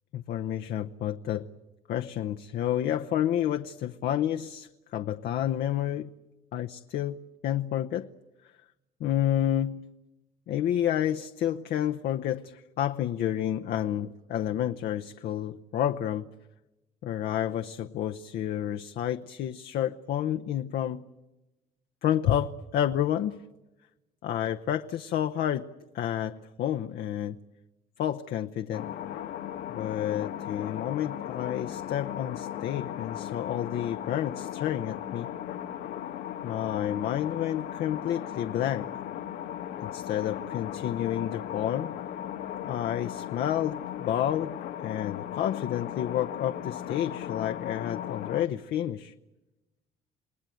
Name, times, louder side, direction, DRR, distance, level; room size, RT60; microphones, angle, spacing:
voice 1, 0.1-1.5 1.9-6.1 6.5-7.2 7.4-8.1 9.0-9.8 10.5-16.3 17.0-21.1 22.0-23.4 24.2-25.7 25.9-27.4 28.0-28.9 29.7-35.3 36.4-38.9 39.8-41.9 42.6-49.1, left 11 dB, 70° left, 6 dB, 0.9 m, -30 dB
sound 1, 28.7-48.5, left 10 dB, 90° left, 1.8 m, -37 dB
28.5 x 20.0 x 9.3 m, 1.0 s
cardioid pair, 110°, 17 cm